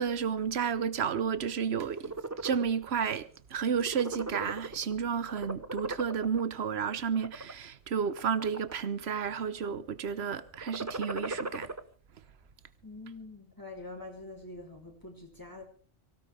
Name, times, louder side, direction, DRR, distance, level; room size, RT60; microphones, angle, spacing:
voice 1, 0.0-2.1 2.4-11.7, right 7 dB, 65° right, 1.2 m, -31 dB
sound 1, 1.7-2.7 3.1-3.4 3.7-4.9 5.3-6.4 7.0-7.5 8.1-8.9 9.2-9.7 10.5-11.8, right 2 dB, 15° right, 0.7 m, -38 dB
voice 2, 12.8-15.6, left 2 dB, 15° left, 3.3 m, -45 dB
24.0 x 17.0 x 3.4 m
omnidirectional pair, 1.2 m